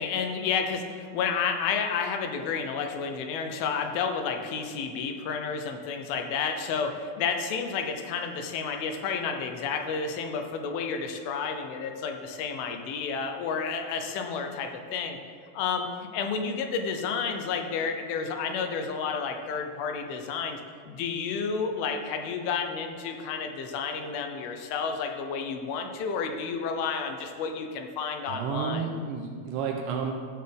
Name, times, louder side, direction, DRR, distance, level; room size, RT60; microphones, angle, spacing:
voice 1, 0.0-15.2 15.5-20.6 20.9-28.9, left 5 dB, 85° left, 5 dB, 2.6 m, -31 dB
voice 2, 28.3-30.1, right 6 dB, 80° right, 2 dB, 1.9 m, -31 dB
14.0 x 6.7 x 3.4 m, 2.1 s
omnidirectional pair, 4.3 m